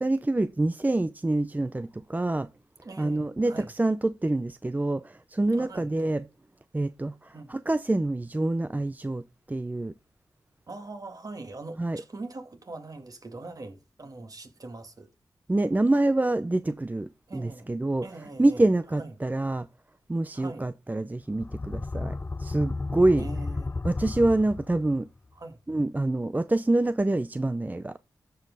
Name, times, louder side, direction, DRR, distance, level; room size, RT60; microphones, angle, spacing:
voice 1, 0.0-2.5 3.0-6.2 6.7-9.2 9.5-9.9 11.8-12.0 15.5-18.1 18.4-19.7 20.1-23.2 23.8-25.1 25.7-27.9, right 2 dB, 20° right, 0.6 m, -26 dB
voice 2, 2.8-3.7 5.5-5.9 7.3-7.5 10.7-15.1 17.3-17.7 18.0-18.6 18.9-19.2 20.3-20.7 23.2-23.8 25.3-25.6, right 2 dB, 50° right, 2.5 m, -42 dB
sound 1, 21.3-25.1, left 3 dB, 25° left, 0.4 m, -33 dB
14.0 x 5.4 x 4.0 m
cardioid pair, 55°, 8 cm